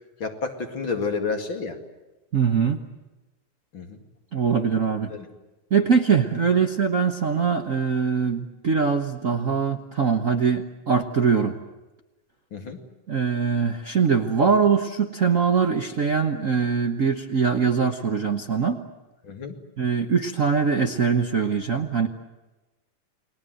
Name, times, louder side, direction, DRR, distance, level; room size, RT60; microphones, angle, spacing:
voice 1, 0.2-1.8 3.7-4.0 5.1-5.3 12.5-12.8 19.2-19.5, left 4 dB, 45° left, 4 dB, 2.8 m, -30 dB
voice 2, 2.3-2.8 4.3-5.1 5.7-11.6 13.1-18.8 19.8-22.1, right 6 dB, 90° right, 4 dB, 0.7 m, -22 dB
30.0 x 21.0 x 7.9 m, 1.1 s
omnidirectional pair, 3.4 m